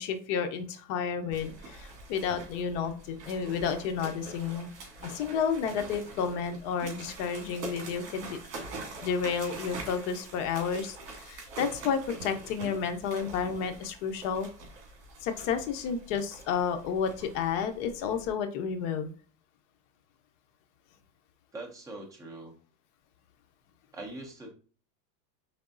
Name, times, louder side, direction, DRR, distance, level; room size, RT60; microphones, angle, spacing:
voice 1, 0.0-4.7 5.0-8.4 9.0-14.5 15.2-19.1, left 6 dB, 45° left, 7 dB, 0.7 m, -31 dB
sound 1, 1.3-18.3, right 3 dB, 50° right, 2.3 m, -45 dB
voice 2, 21.5-22.5 23.9-24.5, right 2 dB, 10° right, 1 dB, 0.4 m, -42 dB
4.8 x 3.4 x 2.5 m, 0.40 s
supercardioid pair, 135°, 50 cm